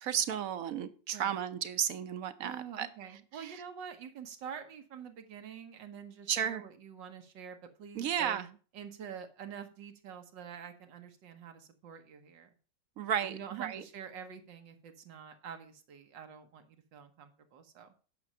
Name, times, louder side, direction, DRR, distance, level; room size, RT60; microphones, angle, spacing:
voice 1, 0.0-2.9 3.3-3.6 6.3-6.6 7.9-8.5 13.0-13.8, right 9 dB, 60° right, 13 dB, 1.0 m, -33 dB
voice 2, 2.4-8.4 8.7-12.5 13.2-17.9, right 8 dB, 90° right, 7 dB, 1.9 m, -47 dB
9.4 x 6.1 x 5.5 m, 0.38 s
omnidirectional pair, 1.9 m